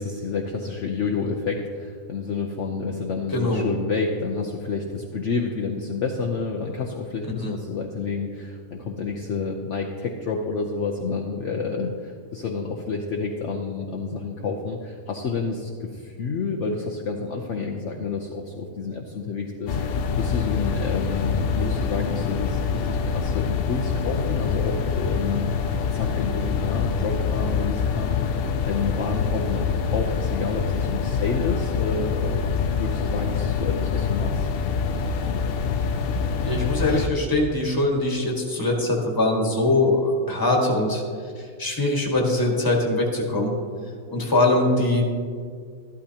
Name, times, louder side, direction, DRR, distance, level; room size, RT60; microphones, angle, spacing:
voice 1, 0.0-25.5 25.9-34.5, left 4 dB, 55° left, 0 dB, 1.0 m, -29 dB
voice 2, 3.3-3.6 7.4-7.5 36.4-41.0 41.4-43.5 44.1-45.0, left 2 dB, 15° left, -1 dB, 1.5 m, -22 dB
sound 1, 19.7-37.1, left 6 dB, 85° left, 0.5 m, -25 dB
13.5 x 12.0 x 2.8 m, 2.1 s
omnidirectional pair, 1.6 m